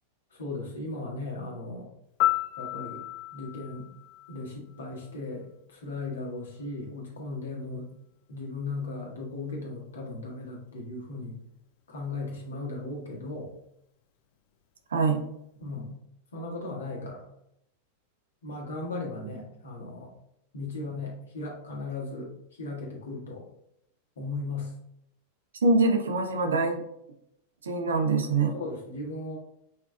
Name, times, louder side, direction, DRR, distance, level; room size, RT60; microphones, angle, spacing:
voice 1, 0.3-1.9 2.6-3.0 3.3-3.9 4.3-7.9 8.3-11.4 11.9-13.5 15.6-15.9 16.3-17.2 18.4-20.1 20.5-22.3 22.6-23.4 24.2-24.7 28.5-29.4, left 2 dB, 65° left, -2 dB, 1.3 m, -37 dB
Piano, 2.2-5.1 13.3-13.5, left 15 dB, 45° left, 0.3 m, -32 dB
voice 2, 14.9-15.2 25.5-26.8 27.6-28.6, right 3 dB, 70° right, 4 dB, 0.6 m, -24 dB
5.5 x 3.5 x 2.2 m, 0.76 s
figure-of-eight pair, 90°, 0 cm